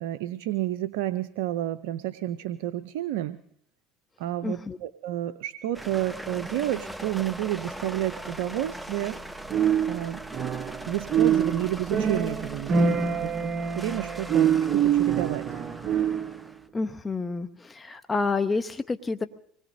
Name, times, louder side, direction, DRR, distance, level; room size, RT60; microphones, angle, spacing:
voice 1, 0.0-3.4 4.2-9.2 9.8-10.2 10.6-13.3 13.7-15.4 17.9-18.0, right 13 dB, 80° right, 13 dB, 0.5 m, -30 dB
voice 2, 4.4-4.8 16.7-19.3, left 3 dB, 20° left, 8 dB, 0.9 m, -29 dB
sound 1, 5.7-16.7, right 1 dB, 5° right, 1.0 m, -40 dB
sound 2, 9.5-10.8 11.1-16.4, right 7 dB, 45° right, 1.1 m, -25 dB
25.0 x 20.0 x 2.7 m, 0.67 s
hypercardioid pair, 75°, 0 cm